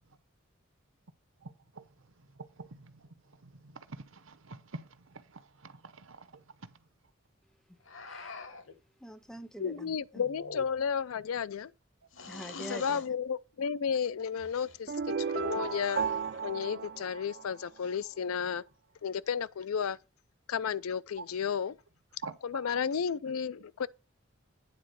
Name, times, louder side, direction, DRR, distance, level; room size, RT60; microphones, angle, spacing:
voice 1, 1.4-1.9 2.4-3.1 3.4-6.4 21.2-21.3 22.2-22.4 22.6-22.7, right 3 dB, 65° right, 0.9 m, -47 dB
sound 1, 7.9-8.8 10.3-11.0 12.1-13.1 14.4-14.8 15.7-16.4, left 3 dB, 65° left, 1.2 m, -46 dB
voice 2, 8.1-8.4 9.0-10.2 12.3-13.0, equal, 5° left, 0.6 m, -45 dB
voice 3, 9.6-11.7 12.7-14.9 15.2-16.1 16.4-18.6 19.0-20.0 20.5-21.8 22.4-23.9, left 7 dB, 85° left, 0.4 m, -33 dB
sound 2, 14.9-17.9, right 6 dB, 50° right, 0.4 m, -34 dB
9.5 x 4.2 x 6.8 m
head